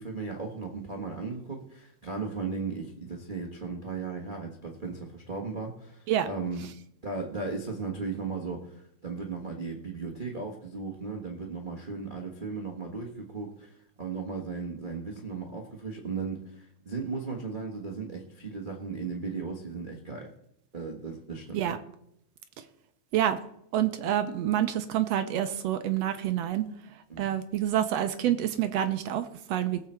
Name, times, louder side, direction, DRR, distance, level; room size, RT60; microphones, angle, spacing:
voice 1, 0.0-6.6 7.0-8.7 9.0-20.3 20.7-21.7 27.1-27.3, right 4 dB, 45° right, -1 dB, 0.6 m, -36 dB
voice 2, 23.7-26.6 27.2-29.8, right 11 dB, 75° right, 9 dB, 1.7 m, -27 dB
19.5 x 7.3 x 4.4 m, 0.75 s
omnidirectional pair, 3.3 m